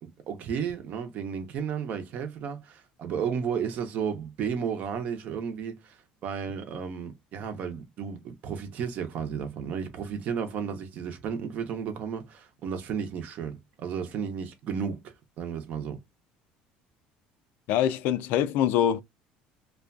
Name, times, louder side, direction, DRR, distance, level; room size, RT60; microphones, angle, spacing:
voice 1, 0.0-16.0, right 7 dB, 50° right, 0.7 m, -33 dB
voice 2, 17.7-19.0, left 10 dB, 65° left, 0.3 m, -24 dB
2.4 x 2.2 x 2.4 m
cardioid pair, 130°, 3 cm